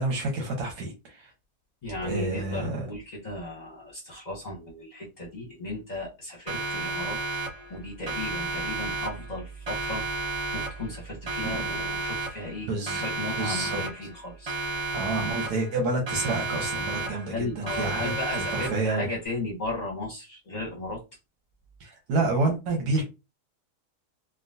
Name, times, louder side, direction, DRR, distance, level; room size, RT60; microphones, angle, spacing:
voice 1, 0.0-1.3 2.0-2.9 11.6-11.7 12.7-13.0 13.4-13.8 14.9-19.1 21.8-23.0, right 2 dB, 80° right, 1.4 m, -29 dB
voice 2, 1.8-7.2 7.7-10.0 10.5-14.6 17.0-21.0, left 2 dB, 35° left, 0.8 m, -35 dB
Siren, 6.5-7.8 8.1-9.4 9.7-11.0 11.3-12.6 12.9-14.2 14.5-15.8 16.1-17.4 17.7-19.0, right 3 dB, 35° right, 0.6 m, -32 dB
3.7 x 2.2 x 2.6 m
omnidirectional pair, 1.7 m